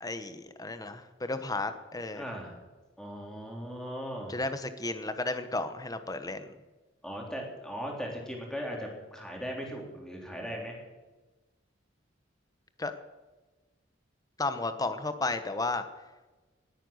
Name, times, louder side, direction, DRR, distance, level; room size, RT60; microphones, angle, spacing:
voice 1, 0.0-2.2 4.3-6.5 12.8-12.9 14.4-15.8, left 2 dB, 20° left, 9 dB, 1.1 m, -33 dB
voice 2, 2.1-2.6 3.0-4.4 7.0-10.8, equal, 5° left, -1 dB, 3.6 m, -38 dB
19.0 x 9.0 x 6.5 m, 1.2 s
head